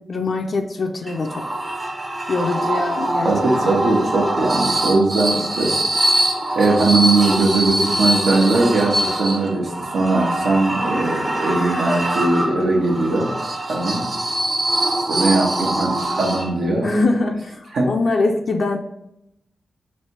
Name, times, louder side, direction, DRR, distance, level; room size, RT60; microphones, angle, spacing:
voice 1, 0.1-1.4 2.3-3.3 3.6-3.7 15.6-15.7 16.8-18.8, left 3 dB, 60° left, 1 dB, 0.4 m, -23 dB
sound 1, 1.1-16.8, right 1 dB, 40° right, 0.8 m, -23 dB
voice 2, 3.2-5.7 6.6-13.3 13.7-14.1 15.1-16.9 17.7-17.9, right 3 dB, 80° right, -1 dB, 1.0 m, -19 dB
3.2 x 2.8 x 4.4 m, 0.82 s
cardioid pair, 55°, 0 cm